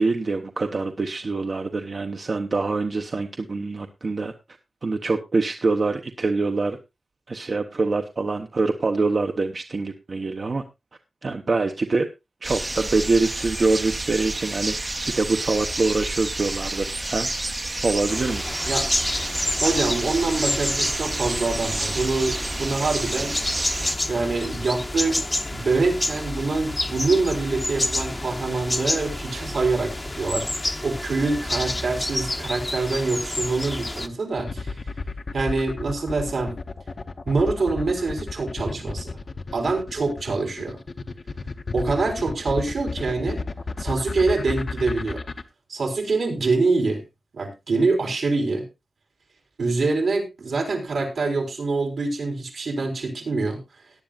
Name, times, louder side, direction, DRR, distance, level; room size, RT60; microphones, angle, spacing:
voice 1, 0.0-4.3 4.8-6.8 7.3-10.6 11.2-12.1 12.4-14.7 15.2-17.3 17.8-18.4, right 3 dB, 50° right, 5 dB, 0.9 m, -24 dB
sound 1, 12.4-24.0, right 2 dB, 25° right, 0.6 m, -29 dB
sound 2, 18.1-34.1, left 1 dB, 20° left, 0.8 m, -29 dB
voice 2, 19.6-23.4 24.0-25.2 25.5-34.8 35.3-36.5 37.3-39.2 39.5-40.8 41.7-43.4 43.8-45.2 45.7-47.0 47.3-48.6 49.6-53.6, right 3 dB, 85° right, 3 dB, 4.2 m, -25 dB
sound 3, 34.4-45.4, left 3 dB, 50° left, 0.8 m, -32 dB
18.0 x 10.5 x 2.4 m, 0.24 s
wide cardioid pair, 125°, 0 cm